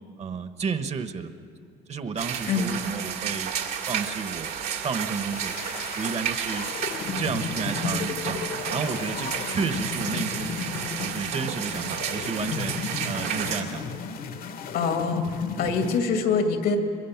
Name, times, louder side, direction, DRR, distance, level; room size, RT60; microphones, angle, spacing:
voice 1, 0.2-1.3 1.9-3.5 3.9-5.6 5.9-6.7 7.2-10.6 11.0-12.8 13.0-13.9, right 5 dB, 40° right, 10 dB, 1.2 m, -32 dB
sound 1, 2.2-13.6, right 8 dB, 75° right, 2.1 m, -32 dB
sound 2, 5.3-16.0, left 6 dB, 60° left, 1.3 m, -34 dB
voice 2, 14.7-15.2 15.6-16.8, left 5 dB, 80° left, 5 dB, 2.4 m, -24 dB
24.0 x 21.0 x 5.9 m, 2.3 s
cardioid pair, 110°, 17 cm